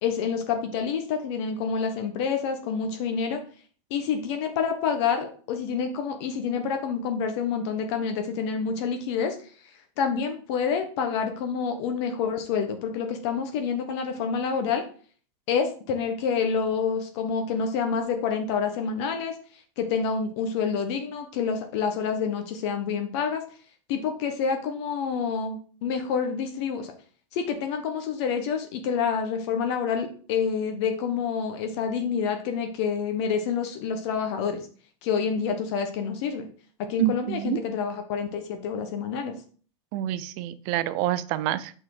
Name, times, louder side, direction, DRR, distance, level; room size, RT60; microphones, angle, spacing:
voice 1, 0.0-3.4 3.9-9.4 10.0-14.8 15.5-19.3 19.8-23.4 23.9-26.9 27.3-34.6 35.0-36.5 36.9-39.3, left 6 dB, 65° left, 5 dB, 1.2 m, -28 dB
voice 2, 37.0-37.6 39.9-41.7, right 13 dB, 55° right, 14 dB, 0.6 m, -27 dB
6.2 x 4.3 x 4.9 m, 0.44 s
supercardioid pair, 140°, 15 cm